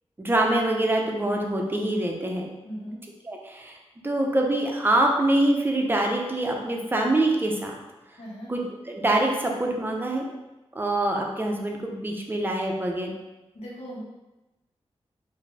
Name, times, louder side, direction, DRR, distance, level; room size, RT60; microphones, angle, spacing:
voice 1, 0.2-2.5 3.2-3.8 4.0-7.8 8.5-10.3 10.7-13.1, right 1 dB, 20° right, 1 dB, 0.6 m, -25 dB
voice 2, 2.6-3.0 8.2-8.5 13.5-14.0, equal, 75° left, -7 dB, 1.4 m, -38 dB
4.8 x 2.6 x 3.3 m, 1.0 s
wide cardioid pair, 135°, 11 cm